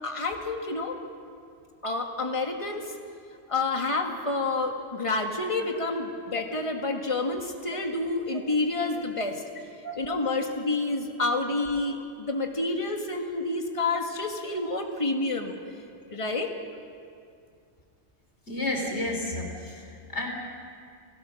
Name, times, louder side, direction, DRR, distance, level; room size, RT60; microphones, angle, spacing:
voice 1, 0.0-1.0 1.8-2.9 3.5-9.4 10.0-15.6 16.1-16.5, left 2 dB, 25° left, 3 dB, 1.8 m, -29 dB
voice 2, 18.5-20.3, left 1 dB, 60° left, 1 dB, 3.9 m, -31 dB
29.0 x 16.5 x 6.4 m, 2.3 s
omnidirectional pair, 1.3 m